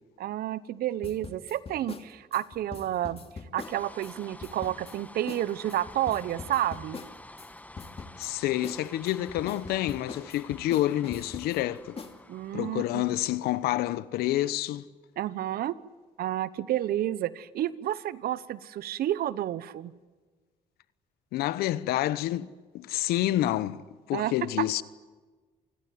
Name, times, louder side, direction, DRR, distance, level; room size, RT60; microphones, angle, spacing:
voice 1, 0.2-3.2 3.5-7.0 12.3-13.0 15.2-15.7 16.2-19.9 24.1-24.3, right 12 dB, 75° right, 1.0 m, -30 dB
sound 1, 1.0-4.1 4.4-5.0 5.3-5.4 5.7-7.5 7.8-8.3 8.6-11.6 12.0-12.2, left 4 dB, 40° left, 2.7 m, -42 dB
sound 2, 3.5-13.8, left 1 dB, 10° left, 1.3 m, -49 dB
voice 2, 8.2-12.0 12.5-14.9 21.3-22.5 22.7-23.8 24.1-24.8, left 14 dB, 85° left, 0.9 m, -28 dB
27.0 x 20.0 x 9.5 m
supercardioid pair, 65°, 16 cm